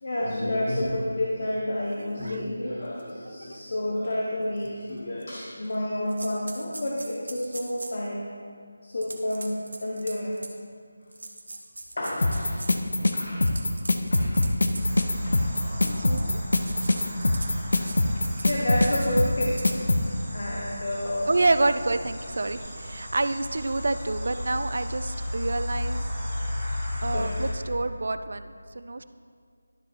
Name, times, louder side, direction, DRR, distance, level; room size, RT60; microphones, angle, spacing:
voice 1, 0.0-8.3 8.8-10.4 12.0-13.7 14.1-14.6 14.9-15.7 17.7-17.9 18.4-19.6 20.3-21.3 27.0-27.3, left 1 dB, 50° left, -3 dB, 1.0 m, -30 dB
sound 1, 2.3-2.4 3.0-3.1 3.5-3.6 4.6-4.7 5.2-5.7 6.1-8.1 9.0-10.6 11.1-12.9 13.3-14.8 15.5-16.2 16.5-18.0 18.2-18.6 18.8-19.1 19.4-19.7, right 2 dB, 70° right, 1.0 m, -40 dB
sound 2, 12.2-20.0, left 2 dB, 70° left, 0.6 m, -22 dB
sound 3, 14.7-27.5, left 1 dB, ahead, 2.2 m, -34 dB
voice 2, 15.8-16.4 21.3-26.0 27.0-28.5 28.7-29.0, right 2 dB, 55° right, 11 dB, 0.3 m, -27 dB
12.0 x 5.0 x 3.5 m, 2.2 s
figure-of-eight pair, 175°, 0 cm